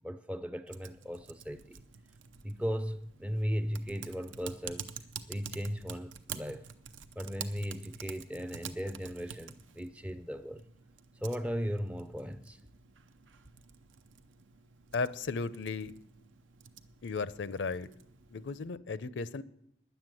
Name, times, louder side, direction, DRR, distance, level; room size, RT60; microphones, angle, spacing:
voice 1, 0.0-1.8 2.4-4.9 5.3-6.7 7.2-10.6 11.2-12.6, equal, 5° right, 0.4 m, -37 dB
Typing, 0.7-18.7, right 7 dB, 85° right, 0.7 m, -49 dB
voice 2, 14.9-15.9 17.0-17.9 18.3-19.4, left 4 dB, 70° left, 0.5 m, -35 dB
10.5 x 7.9 x 9.0 m
head